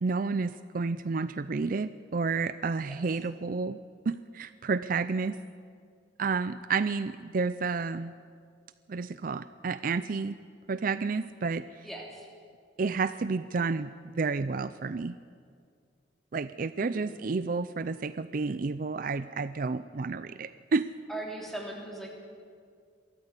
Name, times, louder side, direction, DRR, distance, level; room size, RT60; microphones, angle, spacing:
voice 1, 0.0-3.8 4.1-5.4 6.2-8.1 8.9-10.4 10.7-11.6 12.8-15.1 16.3-20.9, right 4 dB, 50° right, 13 dB, 0.5 m, -30 dB
voice 2, 11.8-12.3 16.8-17.2 21.1-22.1, right 1 dB, ahead, -1 dB, 3.2 m, -40 dB
23.0 x 13.5 x 8.2 m, 2.1 s
head